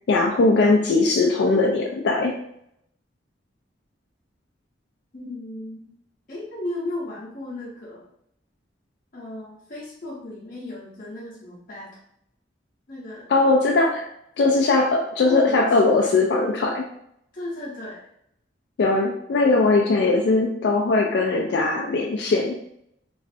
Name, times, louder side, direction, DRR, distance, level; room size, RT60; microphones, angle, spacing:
voice 1, 0.1-2.4 13.3-14.1 14.4-16.9 18.8-22.6, left 3 dB, 65° left, 0 dB, 0.3 m, -20 dB
voice 2, 5.1-6.0 6.3-8.1 9.1-12.0 12.9-13.3 15.2-16.2 17.3-18.0, left 1 dB, 45° left, -6 dB, 0.8 m, -35 dB
3.0 x 2.5 x 2.5 m, 0.73 s
head